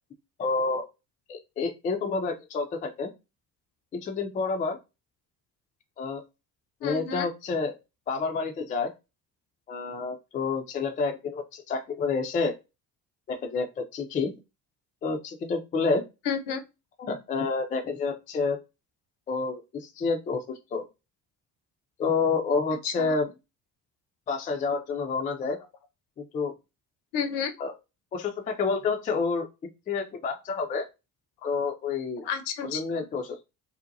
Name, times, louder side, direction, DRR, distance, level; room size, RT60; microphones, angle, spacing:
voice 1, 0.4-0.8 1.3-3.1 3.9-4.8 6.0-6.2 6.8-7.7 8.1-8.9 9.7-12.5 13.3-14.3 15.0-16.0 17.0-18.6 19.3-20.4 20.7-20.8 22.0-23.2 24.3-25.6 26.2-26.5 27.6-27.7 28.1-29.5 29.9-30.9 31.4-32.2 32.6-33.4, left 4 dB, 20° left, 0.3 m, -29 dB
voice 2, 6.8-7.3 16.3-16.6 22.8-23.2 27.1-27.5 32.2-33.1, left 7 dB, 55° left, 0.6 m, -31 dB
2.6 x 2.1 x 2.5 m
hypercardioid pair, 55°, 49 cm